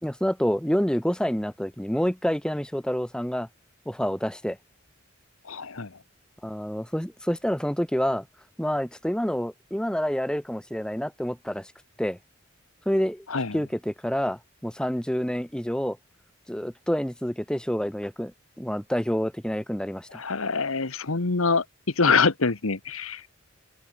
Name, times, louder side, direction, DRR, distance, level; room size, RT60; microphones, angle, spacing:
voice 1, 0.0-3.5 3.9-4.6 6.4-8.2 8.6-11.7 12.0-12.2 12.9-13.3 13.5-16.0 16.5-20.2, equal, 5° left, 1.1 m, -28 dB
voice 2, 5.5-5.9 13.3-13.6 20.1-21.6 22.0-23.3, left 4 dB, 85° left, 1.4 m, -25 dB
open air
head